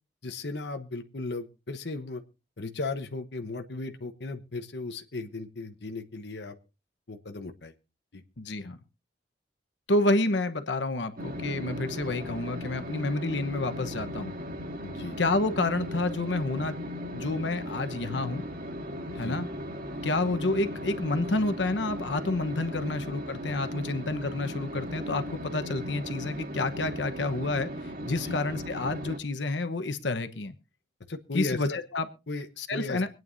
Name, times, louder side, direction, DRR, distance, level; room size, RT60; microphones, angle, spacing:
voice 1, 0.2-2.2 2.6-6.6 7.1-7.7 8.1-8.2 14.8-15.2 19.1-19.4 19.9-20.0 22.9-23.0 28.0-28.4 31.1-31.8 32.3-33.0, left 3 dB, 65° left, 5 dB, 1.0 m, -36 dB
voice 2, 8.4-8.8 9.9-14.3 15.2-16.8 17.1-18.4 19.1-19.5 20.0-30.5 31.3-32.1 32.6-33.1, left 2 dB, 90° left, 9 dB, 1.1 m, -29 dB
sound 1, 11.2-29.2, equal, 55° right, 1.8 m, -37 dB
25.0 x 9.3 x 2.7 m, 0.30 s
head